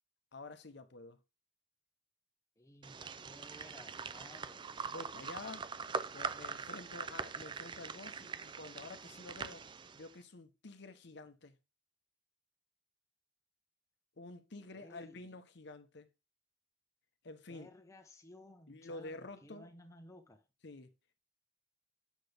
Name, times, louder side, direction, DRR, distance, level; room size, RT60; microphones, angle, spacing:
voice 1, 0.3-1.2 4.9-5.7 6.1-9.7 9.9-11.6 14.2-16.1 17.2-17.7 18.7-19.7 20.6-20.9, left 3 dB, 60° left, 0.8 m, -49 dB
voice 2, 2.6-4.6 14.7-15.3 17.5-20.4, left 1 dB, 15° left, 0.8 m, -57 dB
sound 1, 2.8-10.1, right 5 dB, 25° right, 0.3 m, -43 dB
8.1 x 6.1 x 3.3 m
head